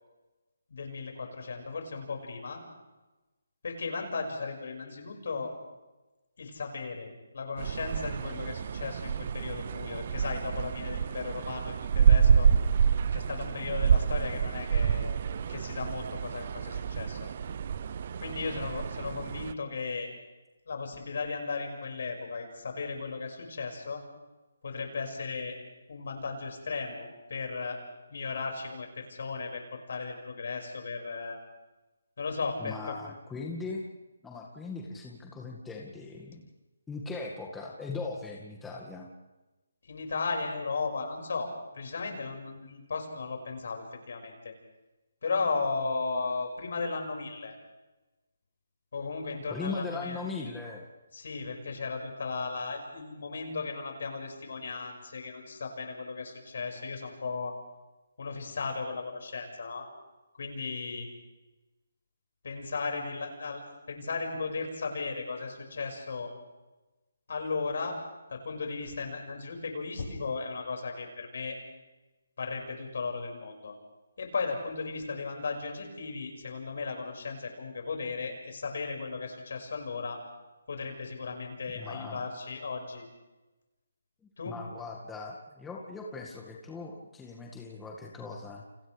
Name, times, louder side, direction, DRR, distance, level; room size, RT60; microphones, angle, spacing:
voice 1, 0.7-2.6 3.6-5.5 6.4-12.5 13.1-15.2 15.5-17.3 18.2-20.1 20.7-24.0 24.6-25.6 25.9-27.0 27.3-27.8 28.1-31.4 32.2-32.9 39.9-44.5 45.2-47.6 48.9-50.2 51.1-57.6 58.2-59.8 60.4-61.1 62.4-66.3 67.3-68.0 68.3-71.6 72.4-73.7 74.2-80.2 80.7-83.0 84.4-84.6, left 4 dB, 60° left, 2 dB, 5.9 m, -36 dB
sound 1, 7.6-19.5, right 7 dB, 45° right, 0.8 m, -28 dB
voice 2, 32.6-33.9 34.2-36.5 36.9-39.1 49.5-50.9 81.8-82.3 84.5-88.6, left 3 dB, 10° left, -1 dB, 2.0 m, -39 dB
30.0 x 28.0 x 3.5 m, 1.1 s
figure-of-eight pair, 150°, 0 cm